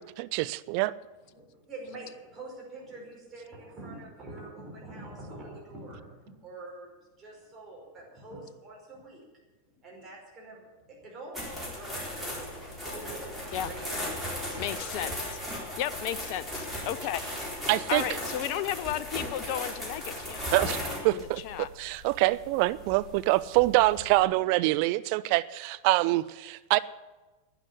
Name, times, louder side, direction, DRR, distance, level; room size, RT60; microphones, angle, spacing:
voice 1, 0.2-0.9 17.7-18.0 20.5-20.8 21.0-21.4 21.8-26.8, right 19 dB, 45° right, 15 dB, 0.5 m, -25 dB
voice 2, 1.3-9.2 9.6-12.5 12.9-14.9 15.6-15.7, right 2 dB, 20° right, -3 dB, 5.0 m, -45 dB
sound 1, 11.3-24.2, left 1 dB, ahead, 4.0 m, -37 dB
voice 3, 14.6-15.4 15.8-17.2 17.9-21.7, left 11 dB, 45° left, 16 dB, 0.6 m, -34 dB
11.5 x 9.9 x 8.4 m, 1.2 s
figure-of-eight pair, 90°, 0 cm